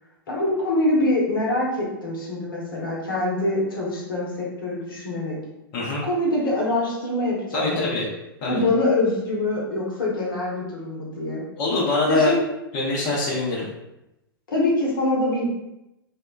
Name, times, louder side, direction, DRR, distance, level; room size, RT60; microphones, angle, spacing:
voice 1, 0.3-5.4 6.0-8.0 8.5-11.4 12.1-12.4 14.5-15.5, left 2 dB, 70° left, -3 dB, 0.8 m, -24 dB
voice 2, 7.5-8.1 8.4-8.6 11.6-12.3 12.7-13.6, left 2 dB, 40° left, -5 dB, 0.7 m, -23 dB
2.8 x 2.1 x 2.3 m, 0.91 s
figure-of-eight pair, 100°, 12 cm